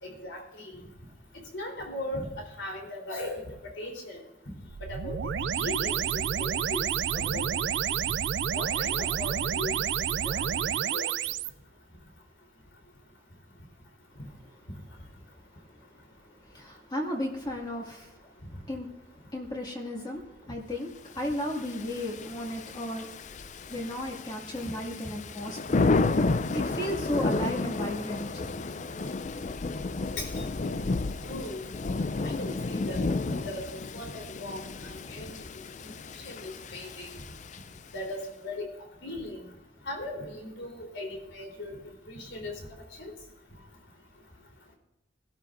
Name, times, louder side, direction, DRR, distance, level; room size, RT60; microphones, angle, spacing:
voice 1, 0.0-0.8 1.5-3.5 3.7-4.2 4.9-5.2 5.6-6.8 7.1-7.4 8.5-9.7 10.2-10.5 10.9-11.1 24.6-24.7 30.2-30.5 31.2-31.6 32.3-33.6 33.9-35.3 35.8-35.9 36.2-37.1 37.9-38.7 39.0-39.4 39.9-41.8 42.1-42.5 43.0-43.1, left 1 dB, 80° left, 1 dB, 3.8 m, -38 dB
sound 1, 4.7-11.5, right 8 dB, 65° right, 0.4 m, -29 dB
voice 2, 16.5-18.1 18.7-18.9 19.3-23.1 23.7-25.9 26.5-28.3, left 1 dB, 25° left, -1 dB, 2.2 m, -34 dB
Thunder / Rain, 21.4-38.0, left 3 dB, 40° left, 0.5 m, -32 dB
22.5 x 12.5 x 2.6 m, 1.0 s
head